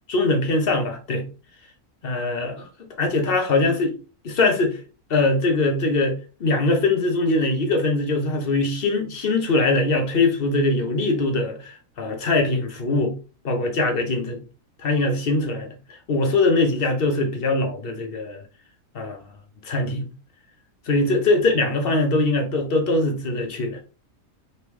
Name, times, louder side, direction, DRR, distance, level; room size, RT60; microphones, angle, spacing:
voice 1, 0.1-1.2 2.0-2.6 3.0-3.9 4.2-4.8 5.1-13.1 13.4-14.4 14.8-15.7 16.1-18.4 18.9-19.2 19.6-20.1 20.9-23.8, left 2 dB, 45° left, 1.0 m, -22 dB
4.0 x 3.1 x 3.4 m
omnidirectional pair, 1.4 m